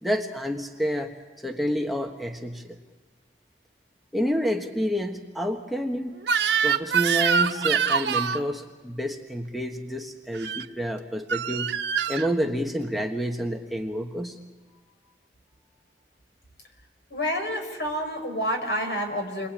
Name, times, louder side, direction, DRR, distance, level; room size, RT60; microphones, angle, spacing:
voice 1, 0.0-1.1 1.4-2.8 4.1-6.1 6.6-11.7 12.1-14.4, equal, ahead, 2 dB, 1.4 m, -29 dB
Crying sobbing / Screech, 6.2-8.4 10.3-10.6 11.3-12.3, right 7 dB, 85° right, 1.1 m, -24 dB
voice 2, 17.1-19.5, equal, 75° left, 3 dB, 5.4 m, -28 dB
29.5 x 23.0 x 8.8 m, 1.4 s
head